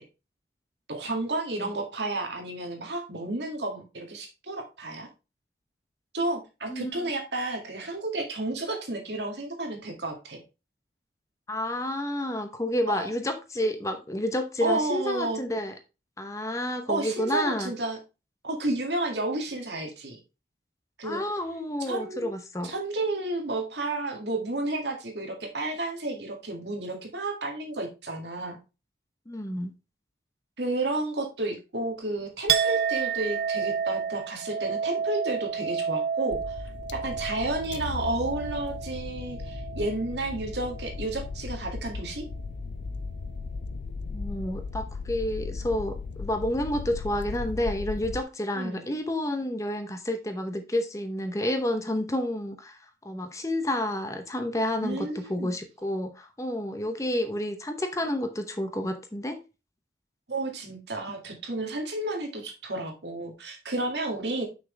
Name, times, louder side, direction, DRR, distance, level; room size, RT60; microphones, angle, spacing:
voice 1, 0.9-5.1 6.1-10.4 12.9-13.1 14.6-15.4 16.9-18.0 18.4-20.2 21.0-21.2 21.8-22.3 22.6-28.6 30.6-36.6 36.9-42.2 48.5-48.9 54.8-55.6 60.3-64.4, right 2 dB, 80° right, 2.0 m, -31 dB
voice 2, 11.5-15.7 16.2-17.7 21.0-22.7 29.3-29.7 44.1-52.8 53.0-59.4, left 1 dB, 20° left, 0.7 m, -30 dB
Chink clink, 32.5-40.2 40.5-41.2, right 7 dB, 60° right, 0.4 m, -30 dB
sound 1, 36.3-48.2, left 4 dB, 90° left, 0.5 m, -36 dB
6.1 x 6.0 x 3.2 m
head